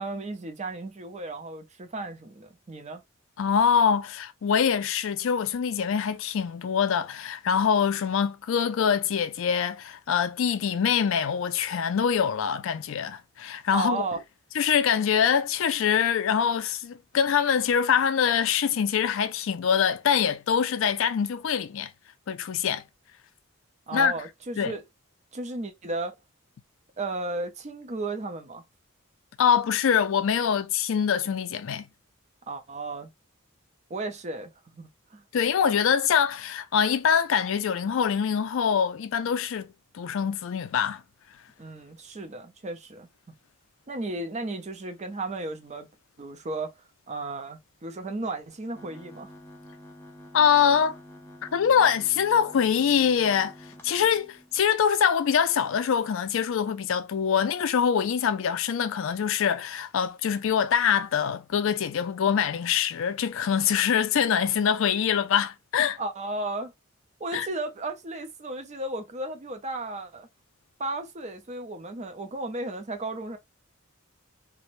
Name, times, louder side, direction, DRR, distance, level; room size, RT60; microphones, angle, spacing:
voice 1, 0.0-3.0 13.7-14.2 23.9-24.8 25.3-26.1 27.0-28.6 32.5-33.1 33.9-35.2 41.6-43.3 43.9-45.9 46.2-46.8 47.1-49.3 66.0-66.7 67.2-70.3 70.8-73.4, right 2 dB, 35° right, 0.5 m, -34 dB
voice 2, 3.4-14.0 14.6-21.9 22.3-22.8 23.9-24.1 24.6-24.7 29.4-31.9 35.3-39.7 39.9-41.0 50.3-51.0 51.5-53.5 53.8-66.0 67.3-67.5, left 7 dB, 65° left, 0.4 m, -24 dB
sound 1, 48.7-54.6, equal, 10° left, 0.6 m, -48 dB
2.5 x 2.1 x 3.0 m
head